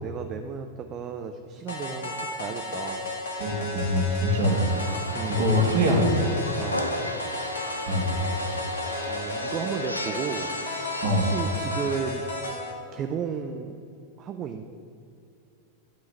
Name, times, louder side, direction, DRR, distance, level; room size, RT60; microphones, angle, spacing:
voice 1, 0.0-3.1 5.1-5.5 6.6-7.1 9.0-12.2 12.9-13.8 14.2-14.6, right 7 dB, 30° right, 6 dB, 0.4 m, -34 dB
sound 1, 1.7-12.7, left 2 dB, 65° left, 1.5 m, -33 dB
voice 2, 3.4-4.7 5.3-6.3 7.9-8.2 11.0-11.3, equal, 45° right, -1 dB, 1.7 m, -23 dB
sound 2, 4.3-12.0, equal, 85° left, 0.5 m, -35 dB
11.0 x 3.8 x 6.3 m, 2.6 s
figure-of-eight pair, 90°, 0 cm